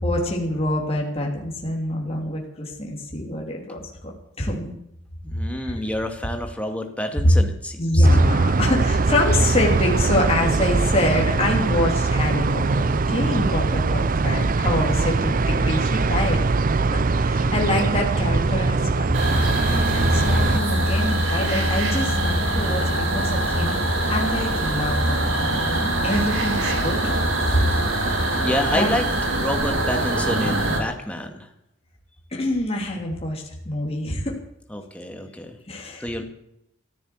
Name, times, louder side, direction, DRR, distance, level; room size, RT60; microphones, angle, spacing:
voice 1, 0.0-4.1 4.4-4.7 5.3-5.7 7.8-16.4 16.9-19.0 19.5-27.0 27.5-27.6 28.7-28.9 32.3-34.4 35.7-36.1, left 1 dB, 30° left, -1 dB, 3.2 m, -25 dB
voice 2, 5.2-8.1 28.4-29.0 29.4-31.5 34.7-35.6 36.0-36.2, left 1 dB, 5° left, 4 dB, 2.2 m, -28 dB
sound 1, 8.0-20.6, right 3 dB, 45° right, 0.6 m, -22 dB
sound 2, 19.1-30.8, right 1 dB, 80° right, 4.2 m, -23 dB
15.0 x 9.4 x 8.7 m, 0.77 s
head